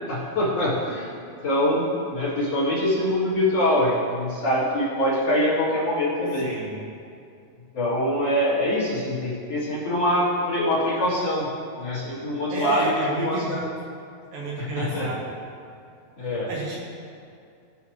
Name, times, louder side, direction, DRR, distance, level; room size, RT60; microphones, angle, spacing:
voice 1, 0.1-1.1 1.4-6.5 7.7-11.4 11.8-12.9 13.2-13.7 14.6-15.1 16.2-16.5, left 1 dB, 50° left, -9 dB, 2.8 m, -24 dB
voice 2, 6.4-6.8 12.5-13.6 14.3-15.4 16.2-16.8, right 2 dB, 70° right, -3 dB, 2.9 m, -31 dB
17.0 x 5.6 x 3.2 m, 2.5 s
omnidirectional pair, 4.3 m